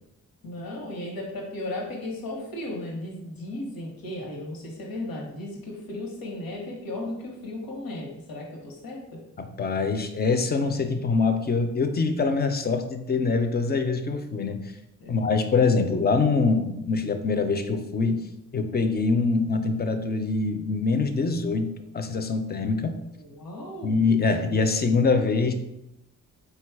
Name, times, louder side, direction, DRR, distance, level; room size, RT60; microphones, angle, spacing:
voice 1, 0.4-9.2 15.0-15.1 23.2-24.0, left 1 dB, 90° left, -2 dB, 1.0 m, -35 dB
voice 2, 9.4-14.7 15.1-18.3 18.5-23.0 23.8-25.5, left 4 dB, 30° left, 8 dB, 0.4 m, -24 dB
4.0 x 2.3 x 4.5 m, 0.87 s
wide cardioid pair, 130°, 34 cm